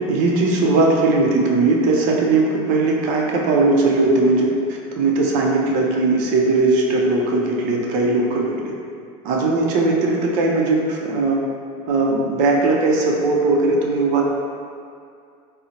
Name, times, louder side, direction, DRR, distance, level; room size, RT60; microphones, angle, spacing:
voice 1, 0.0-8.7 9.2-11.4 11.9-14.2, right 3 dB, 45° right, -2 dB, 0.5 m, -19 dB
4.9 x 2.0 x 2.8 m, 2.3 s
supercardioid pair, 165°, 19 cm